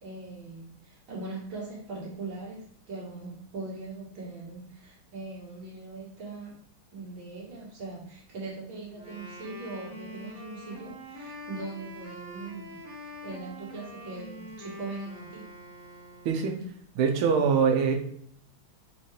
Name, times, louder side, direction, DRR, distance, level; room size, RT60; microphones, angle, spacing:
voice 1, 0.0-6.6 6.9-15.5, right 3 dB, 70° right, -5 dB, 2.2 m, -40 dB
Wind instrument woodwind instrument, 8.9-16.7, equal, 45° right, 1.6 m, -44 dB
voice 2, 16.9-18.0, right 6 dB, 90° right, 3 dB, 1.6 m, -23 dB
4.3 x 3.7 x 3.1 m, 0.63 s
omnidirectional pair, 2.2 m